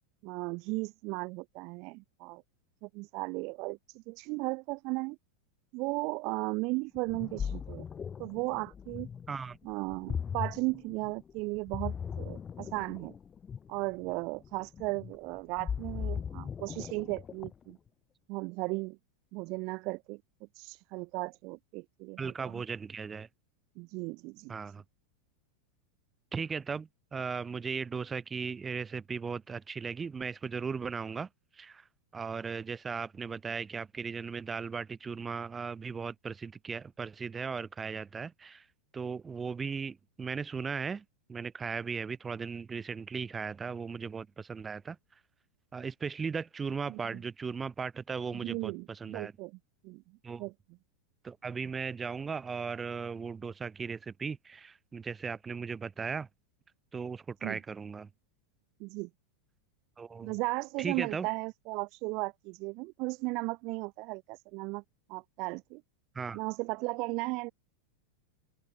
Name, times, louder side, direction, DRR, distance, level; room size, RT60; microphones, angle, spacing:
voice 1, 0.2-2.4 2.8-5.2 5.7-7.8 8.2-9.1 9.6-13.1 13.7-17.8 18.3-19.0 19.3-20.2 20.5-22.3 23.8-24.5 46.9-47.0 48.3-49.5 49.8-50.0 50.4-50.5 57.4-57.6 58.8-59.1 60.2-64.8 65.1-65.8 66.3-67.5, right 27 dB, 40° right, 2.0 m, -36 dB
Ocean, 6.9-17.7, left 7 dB, 20° left, 2.2 m, -39 dB
voice 2, 22.2-23.3 24.5-24.8 26.3-31.9 32.1-38.7 38.9-45.0 45.7-49.3 50.2-50.4 51.2-56.3 56.9-58.1 60.0-60.4 60.8-61.3 66.1-66.4, right 5 dB, 15° right, 7.9 m, -37 dB
open air
figure-of-eight pair, 90°, 0 cm